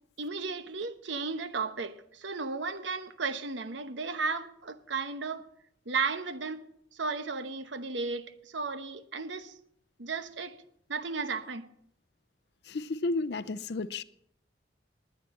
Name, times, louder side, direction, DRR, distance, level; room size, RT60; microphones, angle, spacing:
voice 1, 0.2-5.4 5.9-6.6 6.9-9.6 10.0-10.6 10.9-11.7, right 4 dB, 85° right, 1.0 m, -34 dB
voice 2, 12.7-14.0, left 3 dB, 65° left, 0.5 m, -32 dB
20.0 x 9.6 x 4.2 m
head